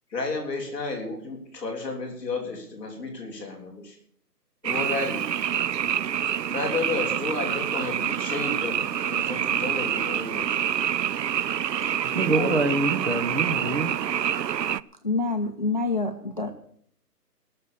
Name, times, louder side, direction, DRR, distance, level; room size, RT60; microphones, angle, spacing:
voice 1, 0.1-4.0 4.6-5.4 6.5-10.5 12.3-12.7 13.1-13.2, left 3 dB, 5° left, -10 dB, 1.7 m, -32 dB
Frog, 4.6-14.8, right 9 dB, 90° right, 0.6 m, -27 dB
voice 2, 11.8-13.9, right 3 dB, 45° right, 7 dB, 1.6 m, -26 dB
voice 3, 15.0-16.5, left 3 dB, 30° left, 5 dB, 0.6 m, -26 dB
17.5 x 6.8 x 6.8 m, 0.64 s
hypercardioid pair, 170°, 48 cm